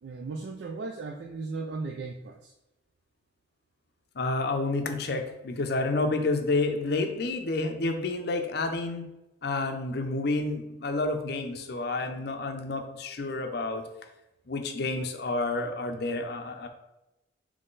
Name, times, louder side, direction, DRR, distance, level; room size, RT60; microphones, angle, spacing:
voice 1, 0.0-2.5, right 3 dB, 55° right, 2 dB, 0.3 m, -36 dB
voice 2, 4.2-9.0 9.4-13.8 14.5-16.7, left 2 dB, 55° left, 5 dB, 0.5 m, -29 dB
3.7 x 3.2 x 3.9 m, 0.94 s
head